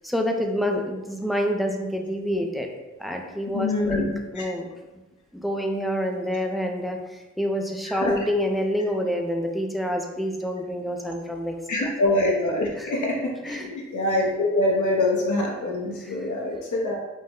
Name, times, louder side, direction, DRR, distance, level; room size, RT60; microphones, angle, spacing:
voice 1, 0.0-2.7 3.0-4.1 4.3-4.7 5.4-11.9 12.8-12.9 13.4-13.7, equal, ahead, 2 dB, 0.3 m, -27 dB
voice 2, 3.5-4.1 7.8-8.2 11.7-17.0, left 2 dB, 85° left, -2 dB, 0.8 m, -24 dB
5.3 x 2.0 x 3.6 m, 1.1 s
wide cardioid pair, 170°, 29 cm